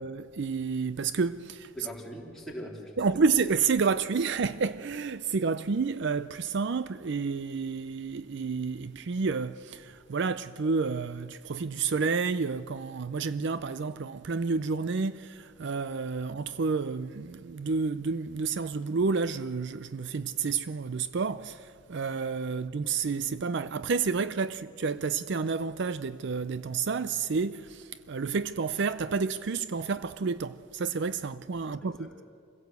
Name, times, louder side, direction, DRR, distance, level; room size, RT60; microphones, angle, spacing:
voice 1, 0.0-1.7 3.0-32.2, right 4 dB, 55° right, 0.4 m, -30 dB
voice 2, 1.7-2.9 31.7-32.2, equal, ahead, 3.4 m, -42 dB
26.0 x 16.5 x 8.1 m
head